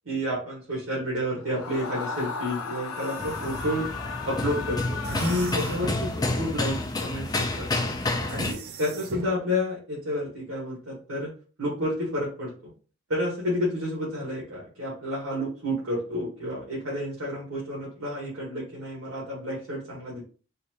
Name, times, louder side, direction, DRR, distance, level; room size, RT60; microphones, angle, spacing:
voice 1, 0.0-3.9 4.2-7.7 8.3-11.3 11.6-12.5 13.1-20.2, left 1 dB, 75° right, -5 dB, 1.3 m, -30 dB
Screaming, 1.4-6.3, left 5 dB, 80° left, 0.6 m, -36 dB
sound 1, 1.6-3.7 5.0-6.1 8.3-9.4, right 3 dB, 45° right, 0.4 m, -40 dB
sound 2, 3.2-8.5, left 2 dB, 20° left, 0.3 m, -29 dB
4.1 x 2.5 x 2.8 m, 0.39 s
head